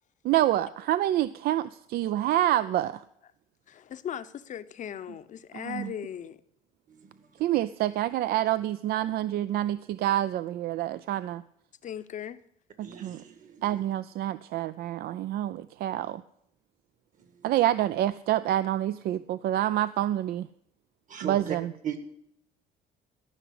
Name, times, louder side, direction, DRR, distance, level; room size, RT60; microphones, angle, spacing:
voice 1, 0.2-3.0 5.6-5.9 7.4-11.4 12.8-13.2 13.6-16.2 17.4-20.5 21.2-21.7, right 13 dB, 65° right, 0.4 m, -27 dB
voice 2, 3.7-6.4 11.8-12.4, left 9 dB, 50° left, 0.7 m, -38 dB
voice 3, 6.9-7.4 12.8-13.8 17.2-17.5 21.1-21.6 21.8-22.0, right 8 dB, 50° right, 1.8 m, -38 dB
14.0 x 5.8 x 8.4 m
cardioid pair, 110°, 17 cm